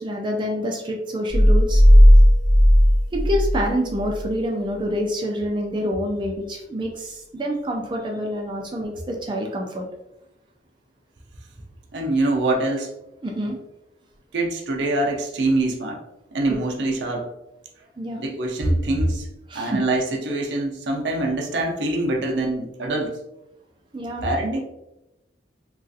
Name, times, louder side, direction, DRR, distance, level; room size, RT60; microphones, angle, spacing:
voice 1, 0.0-1.8 3.1-9.9 13.2-13.6 18.0-18.2 19.5-19.8 23.9-24.3, equal, 25° right, 0 dB, 0.4 m, -27 dB
sound 1, 1.3-4.3, equal, 90° left, 0.8 m, -14 dB
voice 2, 11.9-12.9 14.3-16.0 16.3-17.3 18.2-19.3 19.5-23.2 24.2-24.6, right 2 dB, 80° right, 1 dB, 0.6 m, -24 dB
3.0 x 2.4 x 2.6 m, 0.89 s
head